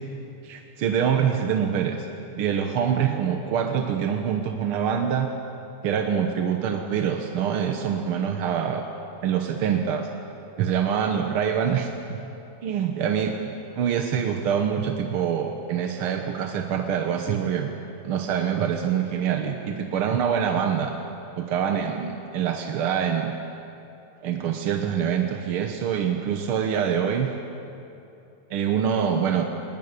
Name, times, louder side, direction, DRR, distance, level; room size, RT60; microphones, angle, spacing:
voice 1, 0.4-2.1 2.4-5.3 5.8-8.9 9.2-10.1 10.6-12.3 12.6-13.4 13.7-17.7 18.0-20.9 21.4-23.3 24.2-27.3 28.5-29.4, right 8 dB, 60° right, 4 dB, 1.5 m, -25 dB
20.5 x 19.0 x 9.6 m, 2.8 s
omnidirectional pair, 3.5 m